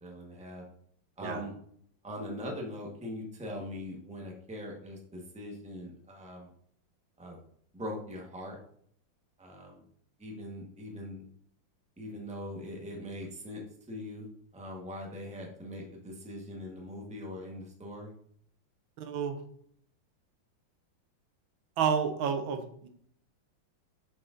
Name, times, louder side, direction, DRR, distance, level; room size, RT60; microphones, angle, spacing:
voice 1, 0.0-0.6 1.2-1.6 2.0-6.5 7.2-7.4 7.7-8.6 9.4-9.8 10.2-11.3 12.0-13.6 13.9-18.1, left 1 dB, 5° right, 0 dB, 1.0 m, -41 dB
voice 2, 19.0-19.4 21.8-22.9, right 7 dB, 90° right, 7 dB, 1.6 m, -30 dB
7.9 x 5.8 x 2.6 m, 0.63 s
omnidirectional pair, 2.1 m